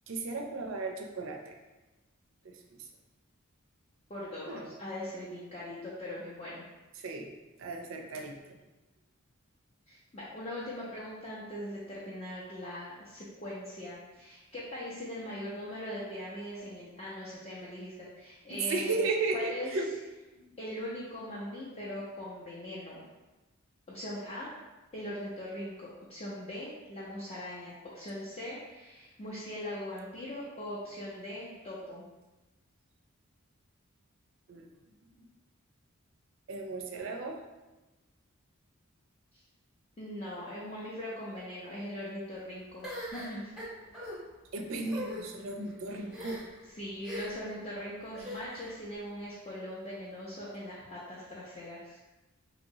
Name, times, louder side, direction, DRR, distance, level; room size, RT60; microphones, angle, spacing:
voice 1, 0.1-1.6 2.4-2.9 4.5-4.6 7.0-7.3 7.6-8.6 18.6-19.9 20.4-20.5 34.5-34.8 35.2-35.3 36.5-37.4 44.5-46.4, right 3 dB, 65° right, 3 dB, 0.4 m, -35 dB
voice 2, 4.1-6.6 9.9-19.0 19.3-19.7 20.6-23.0 23.9-24.5 24.9-32.1 39.3-39.4 40.0-43.5 45.9-46.0 46.7-52.0, left 1 dB, 30° left, -8 dB, 0.5 m, -40 dB
sound 1, 42.8-44.2 44.8-45.2 46.1-46.6 47.0-47.5 48.1-48.7, equal, ahead, 0.7 m, -40 dB
2.9 x 2.9 x 2.7 m, 1.1 s
head